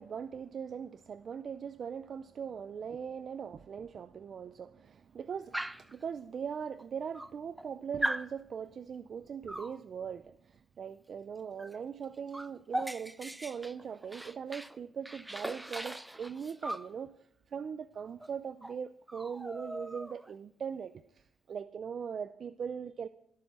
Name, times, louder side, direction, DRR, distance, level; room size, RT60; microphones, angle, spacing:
voice 1, 0.0-17.1 17.5-23.1, right 7 dB, 50° right, 13 dB, 0.5 m, -40 dB
Dog, 5.5-5.9 6.8-6.9 7.1-7.7 8.0-8.3 9.5-9.8 11.6-11.8 12.0-14.8 15.1-16.9 18.2-18.3 18.6-18.8 19.1-20.3, right 1 dB, 10° right, 0.6 m, -39 dB
17.5 x 12.5 x 4.3 m, 0.73 s
cardioid pair, 90°, 0 cm